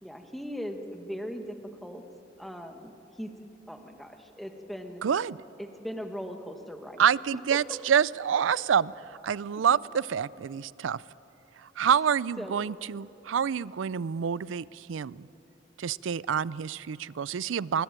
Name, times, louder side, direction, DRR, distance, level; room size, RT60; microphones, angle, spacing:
voice 1, 0.0-1.6 1.8-2.0 2.4-3.3 3.7-5.0 5.6-7.0 12.4-12.6, equal, ahead, 5 dB, 1.4 m, -39 dB
voice 2, 5.0-5.4 7.0-11.0 11.6-15.3 15.8-17.8, right 8 dB, 85° right, 21 dB, 0.4 m, -27 dB
20.5 x 20.5 x 8.9 m, 3.0 s
head